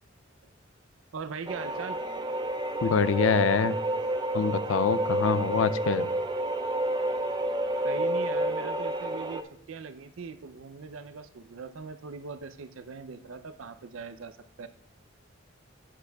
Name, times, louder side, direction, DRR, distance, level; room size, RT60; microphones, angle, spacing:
voice 1, 1.1-2.0 7.8-9.4 9.7-14.7, right 5 dB, 85° right, 11 dB, 0.5 m, -40 dB
sound 1, 1.5-9.4, right 1 dB, 20° right, 0.4 m, -29 dB
voice 2, 2.8-3.8 4.3-6.1, left 6 dB, 75° left, 16 dB, 0.4 m, -25 dB
11.5 x 8.4 x 2.3 m, 0.67 s
head